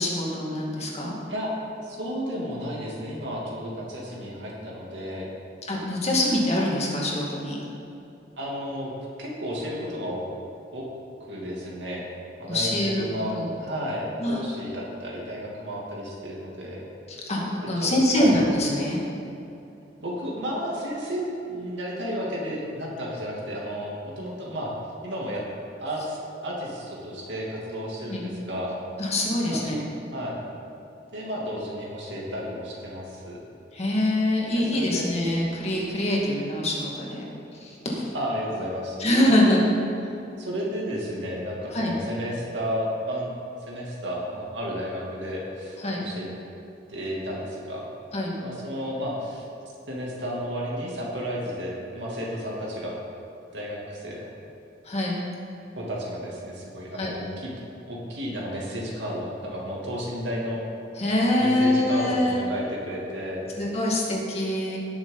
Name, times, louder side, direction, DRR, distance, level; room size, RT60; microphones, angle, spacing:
voice 1, 0.0-1.1 5.6-7.6 12.5-13.1 13.3-13.5 14.2-14.4 17.1-19.0 28.1-28.3 29.0-29.8 33.7-37.3 37.6-38.1 39.0-39.6 41.7-41.9 45.8-46.0 48.1-48.3 54.8-55.2 56.9-57.2 61.0-62.4 63.6-64.8, left 1 dB, 35° left, -3 dB, 2.1 m, -24 dB
voice 2, 1.8-5.3 8.4-8.9 9.2-10.2 10.7-10.9 11.3-12.1 12.4-16.8 17.6-18.3 20.0-24.8 25.0-25.5 25.8-26.2 26.4-28.7 29.5-29.6 30.1-30.4 31.1-33.4 34.5-35.1 38.1-39.0 39.4-39.6 40.4-43.3 43.7-46.3 46.9-47.9 48.4-49.5 49.9-53.0 53.5-54.3 55.7-57.5 57.9-60.6 61.4-63.4, equal, 70° right, -4 dB, 2.6 m, -32 dB
18.5 x 6.9 x 4.0 m, 2.8 s
head